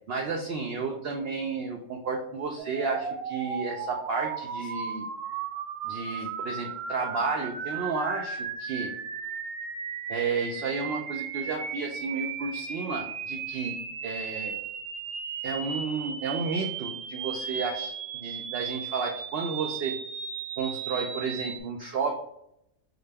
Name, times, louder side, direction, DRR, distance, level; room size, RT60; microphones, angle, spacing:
voice 1, 0.1-5.1 5.8-8.9 10.1-13.8 14.0-14.6 15.4-19.9 20.6-22.2, right 4 dB, 65° right, 2 dB, 0.6 m, -32 dB
sound 1, 2.6-21.6, right 7 dB, 85° right, 1.1 m, -36 dB
5.7 x 2.2 x 3.4 m, 0.77 s
omnidirectional pair, 1.5 m